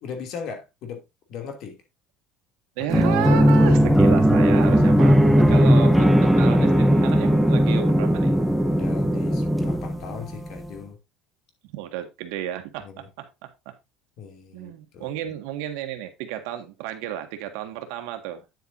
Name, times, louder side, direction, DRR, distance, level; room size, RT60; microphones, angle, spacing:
voice 1, 0.0-1.0 1.3-1.8 2.8-2.9 8.6-11.0 12.8-13.1 14.2-15.1, left 6 dB, 55° left, 2.7 m, -38 dB
voice 2, 2.8-8.4 11.7-13.7 14.5-18.4, right 10 dB, 80° right, 1.7 m, -32 dB
sound 1, 2.9-10.5, equal, ahead, 0.9 m, -18 dB
9.3 x 8.0 x 2.7 m
cardioid pair, 140°, 0 cm